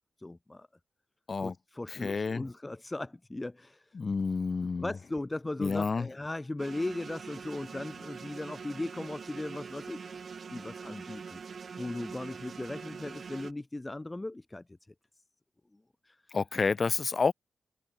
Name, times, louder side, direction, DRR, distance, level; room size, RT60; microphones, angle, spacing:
voice 1, 0.2-0.7 1.4-3.9 4.8-10.0 10.5-11.4 11.8-14.6 16.0-16.2, left 2 dB, 15° left, 2.2 m, -38 dB
voice 2, 1.9-2.5 3.9-4.9 5.6-6.1 16.3-17.3, left 4 dB, 45° left, 5.6 m, -29 dB
sound 1, 6.6-13.5, right 5 dB, 55° right, 3.3 m, -44 dB
wide cardioid pair, 110°, 0 cm